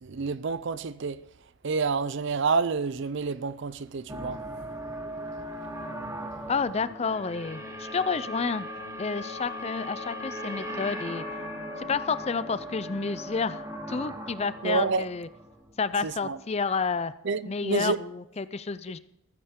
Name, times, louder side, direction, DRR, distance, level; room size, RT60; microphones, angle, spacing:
voice 1, 0.0-1.2 1.6-4.4 14.6-15.0 16.0-16.4 17.2-18.0, right 4 dB, 55° right, 0.5 m, -28 dB
sound 1, 4.1-16.2, right 1 dB, 15° right, 1.0 m, -39 dB
sound 2, 5.3-15.6, left 6 dB, 50° left, 3.8 m, -44 dB
voice 2, 6.5-8.7 9.0-11.2 11.8-13.6 13.9-15.3 15.8-17.1 17.5-19.0, left 4 dB, 30° left, 0.4 m, -30 dB
14.5 x 14.0 x 3.7 m
head